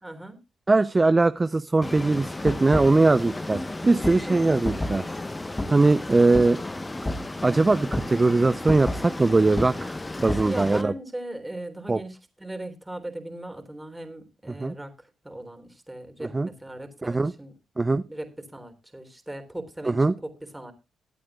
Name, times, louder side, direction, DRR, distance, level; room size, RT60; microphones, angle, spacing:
voice 1, 0.0-0.4 4.3-4.5 10.5-17.5 18.1-20.7, right 1 dB, 10° right, 6 dB, 3.5 m, -38 dB
voice 2, 0.7-5.0 5.7-6.6 7.4-10.9 11.9-12.0 14.6-14.7 16.2-16.5 17.0-17.3 17.8-18.0 19.8-20.1, right 3 dB, 25° right, 13 dB, 0.7 m, -21 dB
sound 1, 1.8-10.8, left 2 dB, 20° left, 1.1 m, -32 dB
23.0 x 8.6 x 2.4 m, 0.27 s
supercardioid pair, 55°, 0 cm